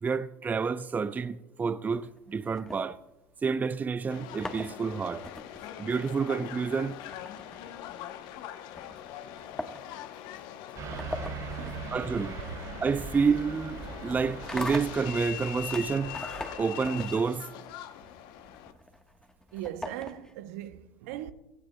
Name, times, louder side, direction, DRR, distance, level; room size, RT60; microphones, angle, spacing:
voice 1, 0.0-3.0 3.4-5.2 5.8-7.0 11.9-12.4 12.8-16.2 16.6-17.5, right 5 dB, 20° right, 0.4 m, -29 dB
sound 1, 1.9-3.5 4.1-20.5, left 1 dB, 10° left, 1.2 m, -43 dB
Subway metro underground, 4.1-18.7, left 11 dB, 65° left, 0.8 m, -42 dB
Car passing by / Truck, 10.8-16.7, right 5 dB, 50° right, 4.2 m, -41 dB
voice 2, 11.6-12.2 19.5-21.3, right 12 dB, 75° right, 0.7 m, -40 dB
16.0 x 16.0 x 2.2 m
hypercardioid pair, 80°, 8 cm